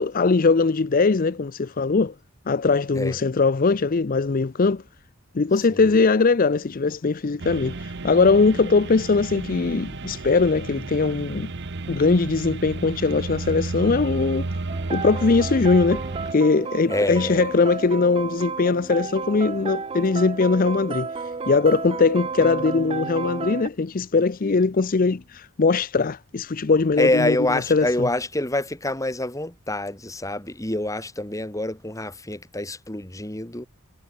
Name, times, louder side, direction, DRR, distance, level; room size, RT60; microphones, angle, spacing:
voice 1, 0.0-2.1 2.5-4.8 5.3-11.5 11.9-14.5 14.9-16.1 16.3-27.4 27.7-28.1, left 4 dB, 45° left, 0.5 m, -21 dB
sound 1, 7.4-16.3, right 3 dB, 55° right, 0.9 m, -32 dB
sound 2, 14.7-23.7, right 4 dB, 25° right, 0.5 m, -32 dB
voice 2, 16.9-17.5 27.0-33.7, left 1 dB, 15° left, 2.3 m, -26 dB
head